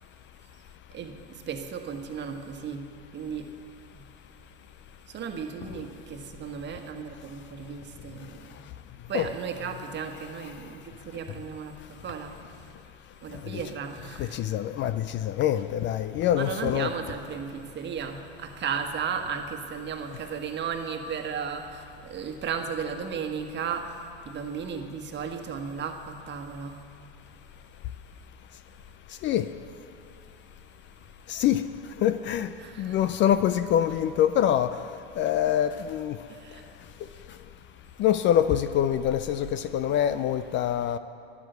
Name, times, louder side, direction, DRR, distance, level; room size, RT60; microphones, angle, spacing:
voice 1, 0.9-3.5 3.9-4.0 5.1-8.7 9.1-12.4 13.2-14.4 16.3-26.8 32.6-33.1 36.3-36.6, right 6 dB, 35° right, 5 dB, 1.5 m, -35 dB
voice 2, 14.2-16.9 29.2-29.5 31.3-31.7 32.0-32.5 32.8-34.8 35.2-36.2 38.0-41.0, left 10 dB, 35° left, 13 dB, 0.5 m, -25 dB
12.5 x 11.0 x 8.1 m, 2.6 s
hypercardioid pair, 105°, 33 cm